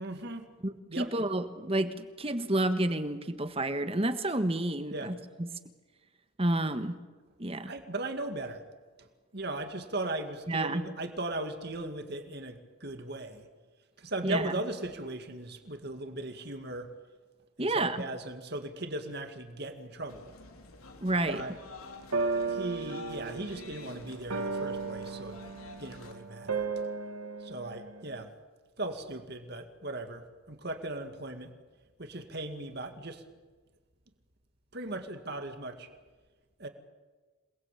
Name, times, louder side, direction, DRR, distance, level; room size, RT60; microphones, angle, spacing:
voice 1, 0.0-0.5 0.9-1.1 4.9-5.1 7.7-8.6 9.0-9.1 9.3-13.5 14.0-16.9 17.6-20.3 21.3-21.6 22.5-25.4 25.8-26.7 27.4-28.3 28.8-31.5 32.0-33.2 34.7-35.9 36.6-36.7, right 2 dB, 50° right, 7 dB, 2.2 m, -38 dB
voice 2, 0.6-5.5 6.4-7.0 7.4-7.7 10.5-10.8 14.2-14.5 17.6-18.1 21.0-21.4, right 1 dB, 25° right, 10 dB, 1.4 m, -30 dB
sound 1, 20.1-26.1, left 4 dB, 90° left, 3.6 m, -49 dB
sound 2, 21.3-21.4 22.1-28.3, right 4 dB, 85° right, 2.0 m, -35 dB
28.0 x 20.5 x 8.4 m, 1.3 s
head